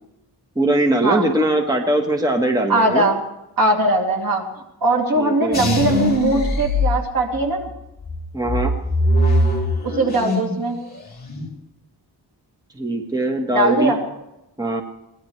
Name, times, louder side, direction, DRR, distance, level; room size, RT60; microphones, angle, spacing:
voice 1, 0.5-3.1 5.2-5.6 8.3-8.7 12.7-13.9 14.6-14.8, right 1 dB, 10° right, 2 dB, 1.3 m, -21 dB
voice 2, 2.7-3.2 3.6-4.5 4.8-7.7 9.8-10.8 13.5-14.0, right 2 dB, 55° right, 0 dB, 2.9 m, -20 dB
sound 1, 5.5-7.6 8.0-10.6 10.9-11.5, left 1 dB, 20° left, 4.1 m, -21 dB
23.0 x 18.0 x 3.3 m, 0.92 s
wide cardioid pair, 150°, 41 cm